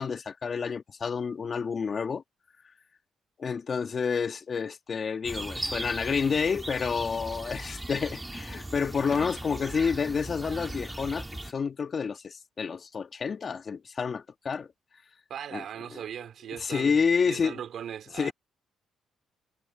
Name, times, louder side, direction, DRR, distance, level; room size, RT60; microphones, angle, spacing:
voice 1, 0.0-2.2 3.4-14.7 15.5-15.6 15.9-16.0 16.6-17.6 18.2-18.3, left 5 dB, 45° left, 2.2 m, -29 dB
sound 1, 5.2-11.5, right 1 dB, 10° right, 2.5 m, -38 dB
voice 2, 15.3-18.3, right 9 dB, 65° right, 4.0 m, -39 dB
cardioid pair, 90°, 0 cm